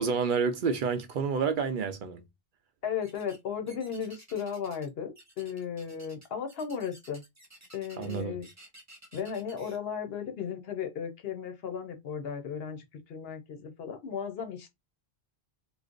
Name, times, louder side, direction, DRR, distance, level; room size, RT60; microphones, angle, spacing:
voice 1, 0.0-2.2 8.0-8.4, right 5 dB, 60° right, 0.6 m, -29 dB
voice 2, 2.8-7.2 7.7-8.5 9.1-14.7, left 7 dB, 75° left, 0.9 m, -35 dB
sound 1, 3.0-3.4 3.7-4.9 5.1-9.8, right 1 dB, 20° right, 0.8 m, -54 dB
3.1 x 2.0 x 3.7 m
omnidirectional pair, 1.0 m